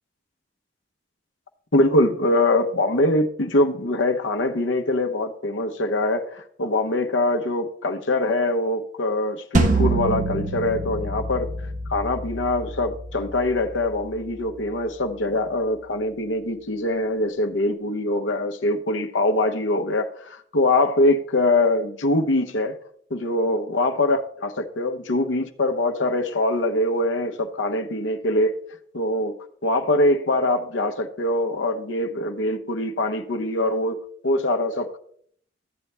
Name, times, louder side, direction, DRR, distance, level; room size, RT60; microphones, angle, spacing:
voice 1, 1.7-11.5 11.9-22.7 23.1-28.5 28.9-29.4 29.6-34.0 34.2-35.0, left 2 dB, 80° left, 0.9 m, -23 dB
sound 1, 9.5-14.6, right 2 dB, 45° right, 0.9 m, -27 dB
13.0 x 8.4 x 3.4 m
head